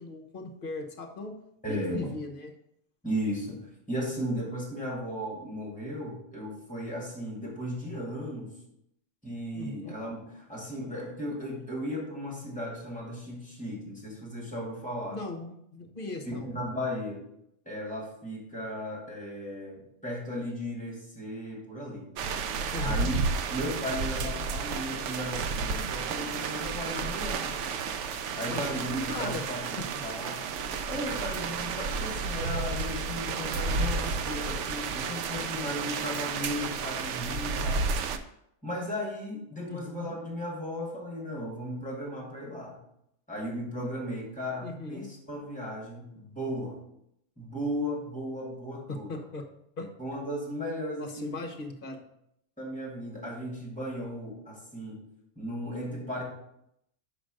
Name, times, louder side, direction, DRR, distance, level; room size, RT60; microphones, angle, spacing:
voice 1, 0.0-1.3 1.7-2.5 9.5-10.0 15.1-16.5 22.7-23.1 28.5-29.5 29.8-29.9 39.7-40.1 44.6-45.1 48.9-49.4 49.8-49.9 51.0-52.0, left 2 dB, 40° left, 3 dB, 1.1 m, -38 dB
voice 2, 1.6-2.2 3.0-8.5 9.2-15.2 16.3-17.2 17.7-22.1 22.8-23.1 23.5-27.5 28.3-29.8 30.0-30.4 30.9-37.8 38.6-42.8 43.3-46.8 47.4-49.1 50.0-51.3 52.6-55.0 55.4-56.2, equal, 5° left, -3 dB, 2.2 m, -36 dB
sound 1, 22.2-38.2, right 4 dB, 65° right, 0.8 m, -32 dB
5.2 x 5.1 x 6.4 m, 0.77 s
omnidirectional pair, 1.5 m